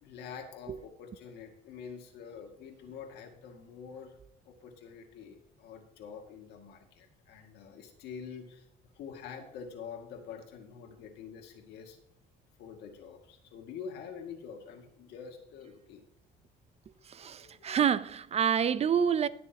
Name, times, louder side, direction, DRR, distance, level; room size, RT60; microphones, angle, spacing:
voice 1, 0.0-4.2 4.5-8.6 9.0-12.0 12.6-16.0 17.2-17.8, left 6 dB, 80° left, 2.2 m, -46 dB
voice 2, 17.1-19.3, right 8 dB, 40° right, 0.6 m, -27 dB
21.0 x 7.0 x 2.9 m
cardioid pair, 110°, 17 cm